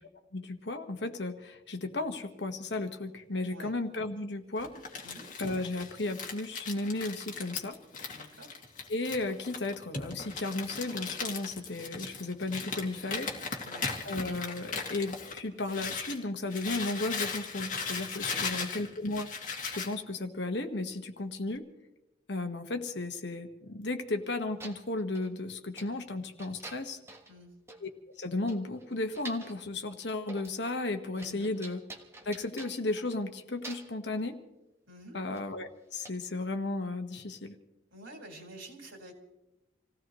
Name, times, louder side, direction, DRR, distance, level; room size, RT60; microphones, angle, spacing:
voice 1, 0.3-4.7 5.4-7.8 8.9-13.3 14.0-19.3 19.7-21.6 22.3-27.0 27.8-27.9 28.2-31.8 32.2-34.4 35.1-37.5, left 2 dB, 60° left, 6 dB, 1.5 m, -34 dB
Crumpling crinkling, 4.6-16.2 16.5-19.9, left 4 dB, 40° left, 2.3 m, -38 dB
voice 2, 8.1-8.5 13.6-13.9 18.2-18.7 27.3-27.5 31.2-31.5 34.9-35.2 37.9-39.1, right 1 dB, 85° right, 1 dB, 4.7 m, -49 dB
sound 1, 24.2-24.3 24.6-25.3 25.8-26.0 26.4-27.4 27.7-27.8 28.2-28.3 28.5-29.6 30.1-30.6 30.9-33.3 33.6-34.0 35.3-35.5 36.1-36.2, right 2 dB, 15° right, 1.3 m, -48 dB
27.5 x 17.0 x 3.1 m, 0.96 s
head